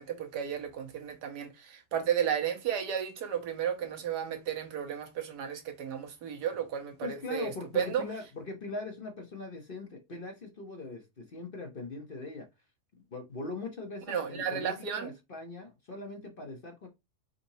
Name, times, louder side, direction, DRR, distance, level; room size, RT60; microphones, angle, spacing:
voice 1, 0.0-8.0 14.1-15.1, right 8 dB, 80° right, 1.5 m, -33 dB
voice 2, 7.0-12.5 13.1-16.9, left 3 dB, 45° left, 0.9 m, -41 dB
4.3 x 3.9 x 2.7 m
omnidirectional pair, 1.7 m